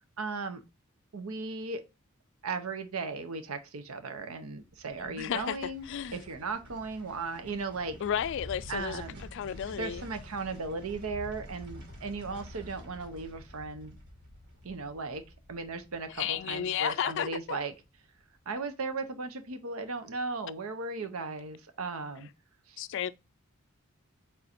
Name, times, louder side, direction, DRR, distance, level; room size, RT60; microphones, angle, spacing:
voice 1, 0.2-0.6 1.1-1.8 2.4-5.9 6.1-8.0 8.7-9.2 9.8-14.0 14.6-15.2 15.5-17.7 18.5-22.3 22.7-22.8, right 3 dB, 85° right, 0.7 m, -36 dB
sound 1, 4.6-17.8 18.1-18.2, equal, 55° right, 1.6 m, -49 dB
voice 2, 5.0-6.2 8.0-9.0 9.3-10.0 16.1-17.6 22.8-23.1, left 9 dB, 60° left, 0.3 m, -33 dB
4.3 x 3.7 x 2.5 m
head